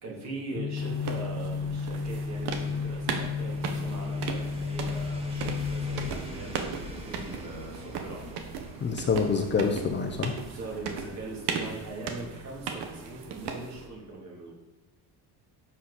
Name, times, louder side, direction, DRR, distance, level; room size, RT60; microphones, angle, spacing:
voice 1, 0.0-8.4 10.5-14.5, right 2 dB, 45° right, -2 dB, 3.3 m, -41 dB
sound 1, 0.6-6.1, left 5 dB, 50° left, 0.9 m, -32 dB
sound 2, 0.8-13.9, right 6 dB, 75° right, 1.6 m, -38 dB
sound 3, 1.3-11.6 11.8-11.9, equal, 15° right, 1.5 m, -45 dB
voice 2, 8.8-10.3, left 5 dB, 25° left, 3 dB, 0.9 m, -26 dB
11.5 x 7.8 x 4.3 m, 1.2 s
cardioid pair, 170°, 39 cm